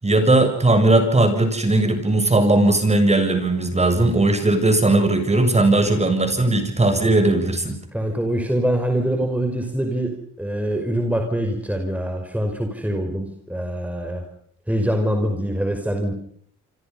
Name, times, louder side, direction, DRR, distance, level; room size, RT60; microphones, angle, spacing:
voice 1, 0.0-7.8, right 2 dB, 20° right, 8 dB, 7.4 m, -18 dB
voice 2, 7.9-14.2 14.7-16.1, right 1 dB, 5° right, 4 dB, 5.4 m, -24 dB
27.5 x 26.5 x 5.7 m, 0.62 s
cardioid pair, 90°, 30 cm